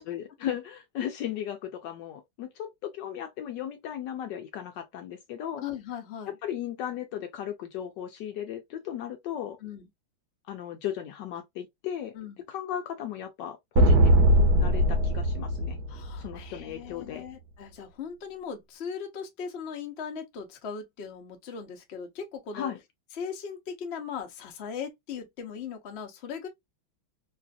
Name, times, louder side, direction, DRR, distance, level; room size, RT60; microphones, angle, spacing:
voice 1, 0.0-5.6 6.4-9.6 10.5-12.1 12.5-15.8 16.2-17.2 22.5-22.8, left 10 dB, 75° left, 1.1 m, -36 dB
voice 2, 5.6-6.3 9.6-9.9 12.1-12.4 15.9-22.7 23.2-26.5, left 6 dB, 55° left, 0.7 m, -38 dB
sound 1, 13.8-16.4, right 1 dB, 65° right, 1.0 m, -21 dB
3.2 x 2.4 x 2.4 m
omnidirectional pair, 2.2 m